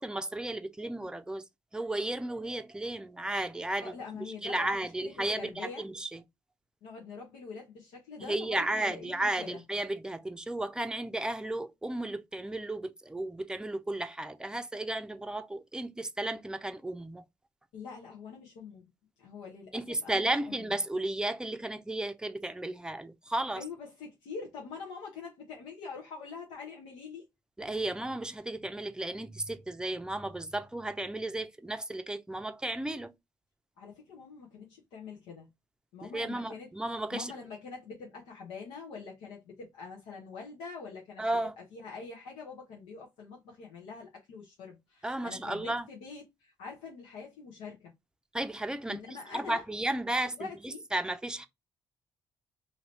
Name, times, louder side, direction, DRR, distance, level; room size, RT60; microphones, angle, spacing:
voice 1, 0.0-1.4 1.7-6.2 8.2-17.2 19.7-23.6 27.6-33.1 36.0-37.3 41.2-41.5 45.0-45.9 48.3-49.0 49.3-51.5, right 1 dB, 10° right, 0.5 m, -34 dB
voice 2, 3.8-5.1 5.4-5.8 6.8-9.6 17.7-18.9 19.2-20.7 23.6-27.3 33.8-35.5 35.9-41.2 41.6-47.9 48.9-49.6 50.4-50.8, left 5 dB, 80° left, 0.9 m, -44 dB
2.8 x 2.6 x 3.2 m
supercardioid pair, 60°, 10 cm